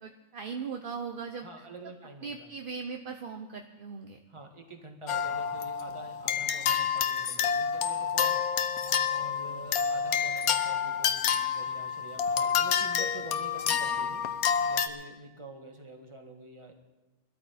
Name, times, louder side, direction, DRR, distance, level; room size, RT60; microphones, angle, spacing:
voice 1, 0.0-1.6 2.2-4.2, right 5 dB, 50° right, 4 dB, 0.7 m, -39 dB
voice 2, 1.4-2.5 4.3-8.8 9.0-14.2 14.7-16.7, right 2 dB, 20° right, 3 dB, 1.6 m, -47 dB
sound 1, 5.1-14.9, left 7 dB, 75° left, 1.2 m, -28 dB
21.0 x 13.0 x 4.2 m, 1.1 s
omnidirectional pair, 1.6 m